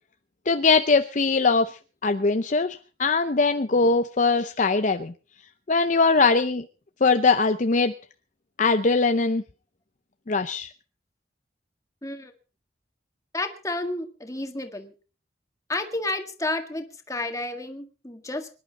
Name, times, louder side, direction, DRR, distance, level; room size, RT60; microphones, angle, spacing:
voice 1, 0.5-5.1 5.7-6.6 7.0-7.9 8.6-9.4 10.3-10.7, left 4 dB, 45° left, 8 dB, 0.7 m, -21 dB
voice 2, 12.0-12.3 13.3-14.9 15.7-18.5, left 2 dB, 20° left, 6 dB, 1.9 m, -31 dB
24.5 x 11.0 x 4.1 m, 0.35 s
head